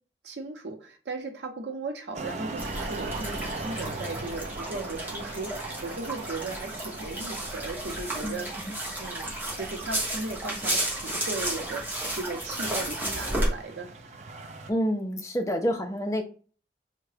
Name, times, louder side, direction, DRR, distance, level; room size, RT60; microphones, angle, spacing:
voice 1, 0.2-8.5 9.0-13.9, right 3 dB, 85° right, 4 dB, 0.7 m, -37 dB
sound 1, 2.1-14.7, right 3 dB, 40° right, 0.4 m, -41 dB
sound 2, 2.6-13.5, right 1 dB, 10° right, 0.9 m, -33 dB
voice 2, 14.7-16.2, equal, 20° left, 3 dB, 0.5 m, -28 dB
3.6 x 2.1 x 3.3 m, 0.40 s
head